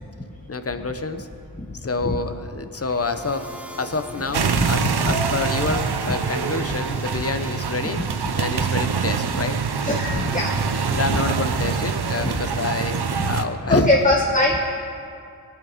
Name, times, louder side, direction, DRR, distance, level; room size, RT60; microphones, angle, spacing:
voice 1, 0.5-1.3 1.8-3.5 3.8-8.0 8.4-9.6 10.9-13.9, left 3 dB, 35° left, 9 dB, 1.0 m, -27 dB
sound 1, 2.9-8.7, equal, 5° right, 1.2 m, -41 dB
sound 2, 4.3-13.5, right 6 dB, 75° right, 0.9 m, -25 dB
voice 2, 4.5-5.2 5.6-5.7 7.8-7.9 8.6-8.7 9.8-11.2 12.2-12.3 13.2-13.3 13.7-14.6, left 1 dB, 20° left, -1 dB, 1.4 m, -22 dB
18.5 x 9.7 x 5.2 m, 2.5 s
wide cardioid pair, 60°, 39 cm